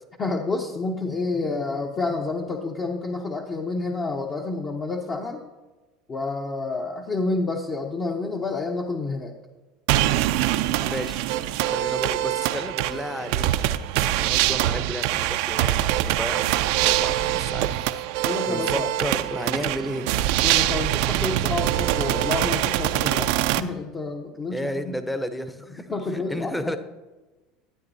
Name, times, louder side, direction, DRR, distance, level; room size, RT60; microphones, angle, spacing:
voice 1, 0.2-5.4 6.1-9.3 18.2-18.9 19.6-19.7 20.4-25.0 25.9-26.7, left 3 dB, 30° left, 0 dB, 0.9 m, -29 dB
sound 1, 9.9-23.6, right 14 dB, 75° right, 0.4 m, -24 dB
voice 2, 10.8-11.3 11.7-13.5 14.1-15.8 16.0-17.7 18.1-20.1 24.5-26.8, equal, 5° left, 9 dB, 0.8 m, -32 dB
13.0 x 9.0 x 2.7 m, 1.2 s
supercardioid pair, 105°, 0 cm